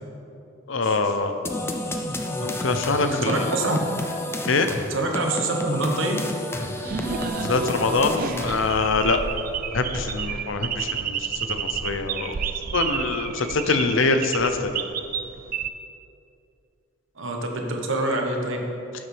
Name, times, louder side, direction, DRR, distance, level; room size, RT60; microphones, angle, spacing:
voice 1, 0.7-1.3 2.4-3.5 4.5-4.7 7.4-9.2 9.7-12.4 12.7-14.7, left 3 dB, 75° left, 8 dB, 0.6 m, -24 dB
sound 1, 1.5-8.8, left 1 dB, 10° left, 0.5 m, -31 dB
voice 2, 3.0-3.8 4.9-6.2 17.2-18.6, right 2 dB, 70° right, 2 dB, 1.1 m, -25 dB
sound 2, 6.8-15.7, right 7 dB, 45° right, 0.3 m, -31 dB
12.5 x 7.1 x 3.4 m, 2.6 s
head